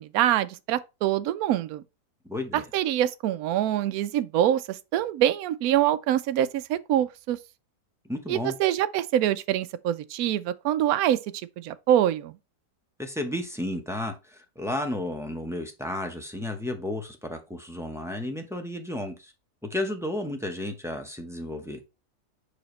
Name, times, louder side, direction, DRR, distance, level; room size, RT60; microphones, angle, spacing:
voice 1, 0.0-1.8 2.5-7.4 8.3-11.2 11.6-12.3, right 12 dB, 70° right, 0.9 m, -25 dB
voice 2, 2.3-2.6 8.1-8.5 13.0-19.3 19.6-21.8, left 1 dB, 5° right, 0.5 m, -32 dB
6.9 x 4.9 x 3.1 m
omnidirectional pair, 1.8 m